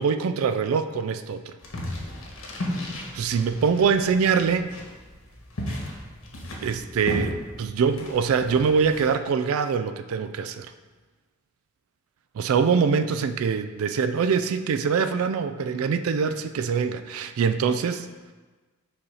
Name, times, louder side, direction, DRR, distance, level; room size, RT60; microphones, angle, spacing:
voice 1, 0.0-1.6 3.1-4.8 6.6-10.7 12.3-18.1, right 6 dB, 85° right, 10 dB, 0.3 m, -24 dB
sound 1, 1.6-9.1, left 1 dB, 75° left, 1.2 m, -35 dB
5.4 x 4.2 x 5.4 m, 1.3 s
head